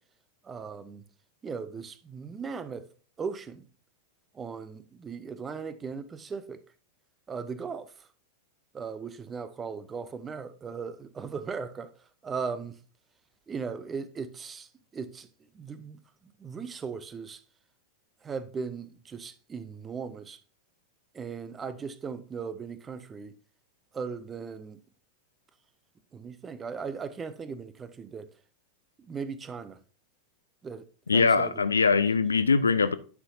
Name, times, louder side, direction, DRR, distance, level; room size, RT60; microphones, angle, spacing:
voice 1, 0.4-1.0 1.4-2.9 3.2-3.6 4.3-6.6 7.3-8.1 8.7-11.9 12.2-12.8 13.5-15.3 15.5-16.0 16.4-17.4 18.2-20.4 21.1-23.3 23.9-24.8 26.1-28.3 29.0-29.8 30.6-31.6, right 5 dB, 20° right, 0.7 m, -38 dB
voice 2, 31.1-33.0, left 4 dB, 75° left, 0.5 m, -22 dB
9.6 x 5.7 x 2.7 m
figure-of-eight pair, 90°, 0 cm